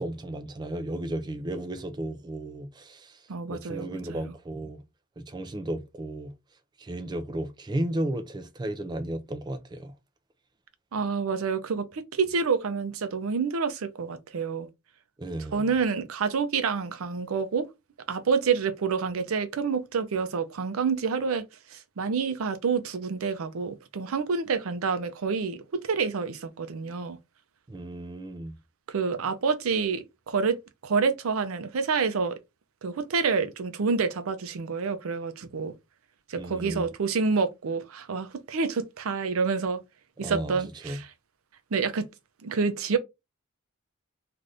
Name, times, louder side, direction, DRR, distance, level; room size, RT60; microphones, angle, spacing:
voice 1, 0.0-3.2 3.5-4.8 5.2-6.3 6.8-9.9 15.2-15.7 27.7-28.5 36.4-36.9 40.2-40.6 40.8-41.0, right 1 dB, 20° right, 0.3 m, -34 dB
voice 2, 3.3-4.3 10.9-14.7 15.5-17.7 18.1-21.4 21.7-27.2 28.9-30.6 30.8-32.4 32.8-35.7 36.3-39.8 40.2-41.1 41.7-42.1 42.4-43.0, right 5 dB, 85° right, 0.5 m, -28 dB
2.5 x 2.5 x 3.3 m
head